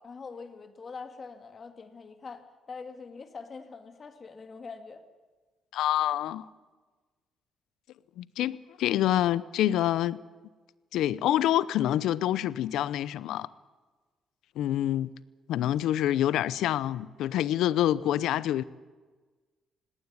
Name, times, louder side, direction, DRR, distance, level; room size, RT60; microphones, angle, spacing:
voice 1, 0.0-5.0, left 4 dB, 40° left, 2.3 m, -44 dB
voice 2, 5.7-6.4 8.2-10.2 10.9-13.5 14.6-15.1 15.5-18.6, left 12 dB, 85° left, 0.7 m, -26 dB
19.0 x 17.5 x 9.6 m
cardioid pair, 90°, 0 cm